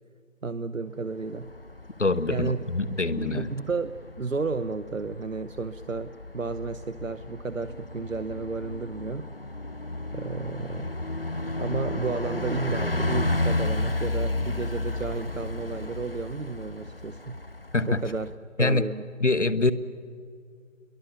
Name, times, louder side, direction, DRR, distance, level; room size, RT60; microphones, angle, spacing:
voice 1, 0.4-1.5 2.3-2.6 2.9-9.3 10.1-10.9 11.6-17.4 17.9-18.3 18.6-19.1, right 4 dB, 75° right, 12 dB, 0.8 m, -32 dB
Bus, 1.2-18.3, left 2 dB, 45° left, 0.6 m, -33 dB
voice 2, 2.0-3.5 17.7-18.0 18.6-18.9 19.2-19.7, left 3 dB, 65° left, 14 dB, 1.2 m, -24 dB
26.5 x 22.5 x 7.2 m, 2.1 s
figure-of-eight pair, 170°, 39 cm